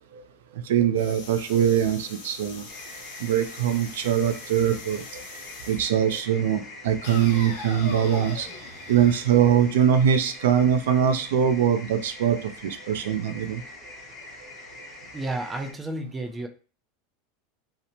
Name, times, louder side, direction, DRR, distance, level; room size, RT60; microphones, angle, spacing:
voice 1, 0.7-2.6 3.2-5.2 5.7-8.5 8.9-12.4 12.6-13.6, right 9 dB, 80° right, 8 dB, 0.3 m, -22 dB
sound 1, 1.0-5.9 7.0-10.0, left 4 dB, 75° left, 0.8 m, -42 dB
sound 2, 2.7-15.7, left 2 dB, 35° left, 0.9 m, -44 dB
voice 2, 15.1-16.5, right 2 dB, 15° right, 5 dB, 0.4 m, -31 dB
2.9 x 2.0 x 2.6 m, 0.38 s
hypercardioid pair, 110°, 0 cm